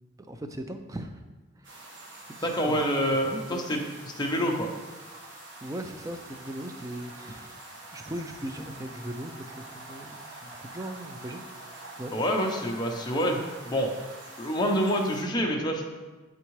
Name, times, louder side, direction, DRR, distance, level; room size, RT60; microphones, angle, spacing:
voice 1, 0.3-1.2 2.4-2.8 3.2-3.7 5.6-7.6 7.9-11.4 12.0-12.1, right 1 dB, 15° right, 6 dB, 0.4 m, -38 dB
sound 1, 1.6-15.2, right 2 dB, 60° right, 1.2 m, -46 dB
voice 2, 2.4-4.7 12.1-13.4 13.6-13.9 14.4-15.8, equal, 20° left, 1 dB, 0.7 m, -27 dB
9.2 x 3.6 x 3.1 m, 1.2 s
head